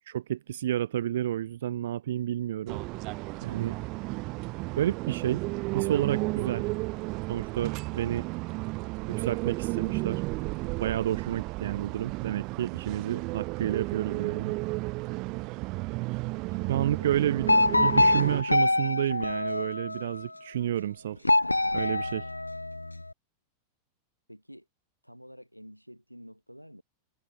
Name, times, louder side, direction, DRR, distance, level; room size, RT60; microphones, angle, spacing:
voice 1, 0.1-2.8 3.4-3.8 4.8-5.5 5.7-6.7 7.3-8.3 9.2-10.2 10.8-14.6 16.7-17.5 17.8-21.3 21.7-22.3, right 11 dB, 60° right, 1.7 m, -30 dB
sound 1, 2.7-18.4, right 25 dB, 40° right, 1.4 m, -33 dB
voice 2, 16.5-17.5 24.3-24.7 25.0-26.8, equal, 90° right, 7.7 m, -49 dB
sound 2, 17.5-20.2 21.2-23.0, left 2 dB, 85° left, 0.6 m, -25 dB
figure-of-eight pair, 90°, 0 cm